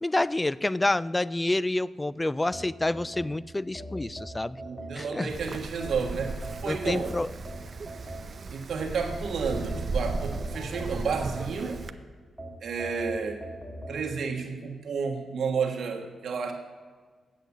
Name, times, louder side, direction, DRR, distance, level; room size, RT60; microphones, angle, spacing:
voice 1, 0.0-4.6 4.9-5.3 6.6-7.3, left 2 dB, 20° left, 19 dB, 0.3 m, -28 dB
sound 1, 2.5-5.3 5.8-8.6 9.1-11.9 12.4-14.0, right 1 dB, ahead, 2.5 m, -41 dB
voice 2, 4.6-7.2 8.5-11.8 12.6-13.4 13.9-16.5, right 5 dB, 70° right, 2 dB, 1.5 m, -31 dB
Wind, 5.3-11.9, right 3 dB, 50° right, 0.6 m, -36 dB
8.3 x 8.2 x 7.2 m, 1.5 s
cardioid pair, 65°, 0 cm